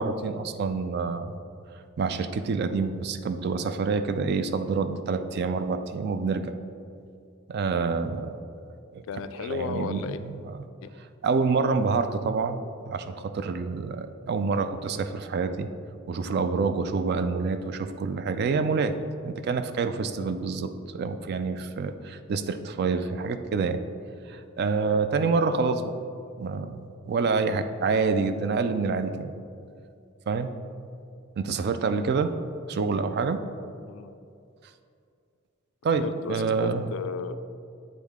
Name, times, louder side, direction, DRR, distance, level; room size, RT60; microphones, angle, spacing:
voice 1, 0.0-1.4 2.0-6.5 7.5-8.4 8.9-9.0 9.4-10.6 11.2-12.6 12.9-15.7 16.1-18.9 19.2-23.8 24.3-25.9 26.4-29.3 30.3-30.5 31.4-32.3 32.7-33.4 35.8-36.9, right 4 dB, 55° right, 10 dB, 0.3 m, -27 dB
voice 2, 9.1-10.2 10.8-10.9 33.9-34.1 35.9-37.4, left 5 dB, 70° left, 11 dB, 0.3 m, -34 dB
8.2 x 3.7 x 3.5 m, 2.4 s
head